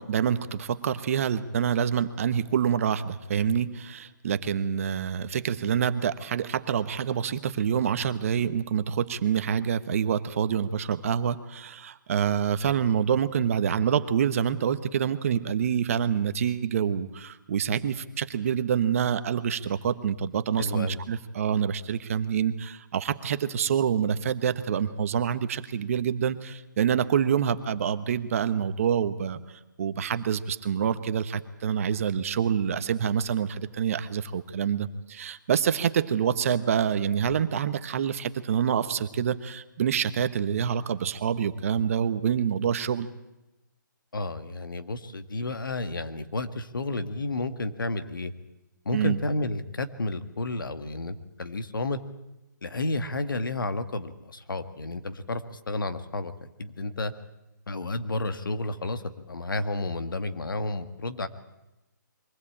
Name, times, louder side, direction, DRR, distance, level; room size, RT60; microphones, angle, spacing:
voice 1, 0.0-29.4 29.8-43.1 48.9-49.2, right 8 dB, 45° right, 12 dB, 1.2 m, -26 dB
voice 2, 20.6-21.0 44.1-48.3 48.8-52.0 52.6-57.1 57.7-61.3, left 2 dB, 90° left, 10 dB, 1.7 m, -31 dB
23.0 x 16.0 x 8.6 m, 0.97 s
hypercardioid pair, 160°, 11 cm